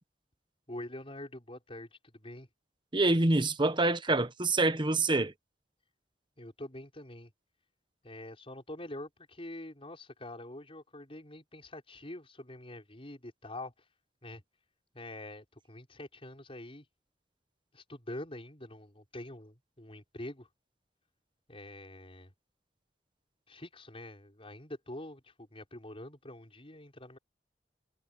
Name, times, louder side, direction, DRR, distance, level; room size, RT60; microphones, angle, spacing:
voice 1, 0.7-2.5 6.4-7.3 8.0-13.7 14.2-14.4 14.9-16.9 17.7-20.5 21.5-22.3 23.5-27.2, left 1 dB, 35° left, 5.6 m, -45 dB
voice 2, 2.9-5.3, right 2 dB, 30° right, 1.1 m, -26 dB
head